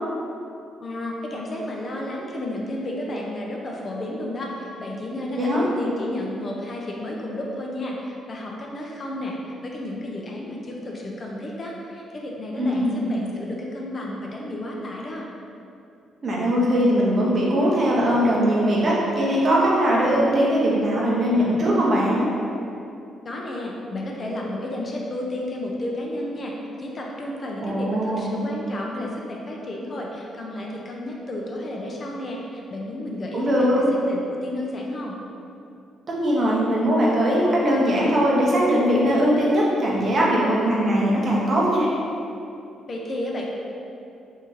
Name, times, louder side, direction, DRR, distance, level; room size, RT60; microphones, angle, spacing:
voice 1, 0.8-15.3 23.2-26.5 26.8-33.5 33.7-33.8 34.1-35.1 42.9-43.5, left 1 dB, 40° left, -2 dB, 0.5 m, -32 dB
voice 2, 12.6-13.0 16.2-22.3 27.6-28.3 33.3-33.8 36.1-41.9, equal, 45° right, -4 dB, 0.8 m, -20 dB
3.0 x 2.7 x 3.7 m, 2.6 s
cardioid pair, 90°, 0 cm